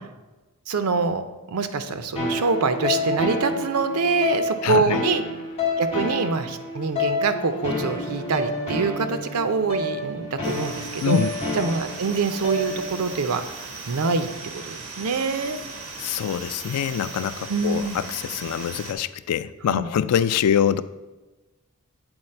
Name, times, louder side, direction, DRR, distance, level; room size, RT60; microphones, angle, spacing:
voice 1, 0.7-1.2 1.5-5.2 5.8-11.2 11.6-13.4 13.9-14.3 14.5-15.6 17.5-18.0 19.7-19.9, right 4 dB, 85° right, 9 dB, 0.5 m, -25 dB
sound 1, 2.2-13.1, left 2 dB, 30° left, 1.7 m, -29 dB
voice 2, 4.6-5.0 11.0-11.3 16.0-20.8, left 8 dB, 90° left, 14 dB, 0.3 m, -24 dB
sound 2, 10.4-18.9, right 3 dB, 70° right, 1.1 m, -38 dB
8.0 x 3.9 x 4.3 m, 1.1 s
head